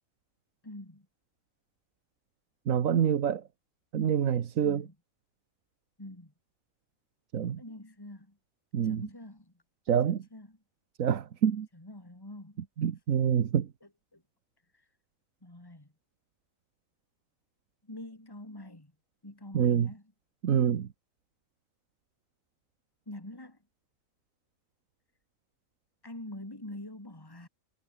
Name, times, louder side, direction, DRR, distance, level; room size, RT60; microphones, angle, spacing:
voice 1, 0.6-1.1 4.6-4.9 6.0-6.3 7.6-8.4 8.8-9.6 10.1-10.6 11.7-12.7 13.8-14.2 14.7-14.9 15.4-15.9 17.8-18.9 19.2-20.1 23.1-23.6 26.0-27.5, left 1 dB, 15° left, 3.1 m, -45 dB
voice 2, 2.7-3.4 3.9-4.8 7.3-7.6 8.7-9.0 9.9-10.2 11.0-11.7 12.8-13.7 19.5-19.9 20.4-20.9, right 8 dB, 75° right, 1.5 m, -26 dB
omnidirectional pair, 1.4 m